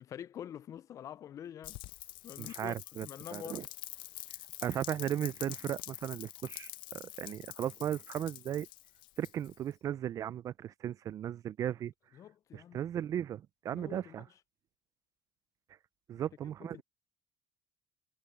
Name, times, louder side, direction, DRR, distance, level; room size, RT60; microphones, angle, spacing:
voice 1, 0.0-1.8 2.2-3.6 12.1-12.8 13.7-14.2 16.2-16.3 16.6-16.8, left 10 dB, 40° left, 0.4 m, -46 dB
Rain, 1.6-9.7, left 17 dB, 70° left, 0.7 m, -46 dB
voice 2, 2.4-3.6 4.6-8.7 9.2-11.9 12.5-14.2 16.1-16.8, right 10 dB, 40° right, 0.4 m, -36 dB
cardioid pair, 130°, 9 cm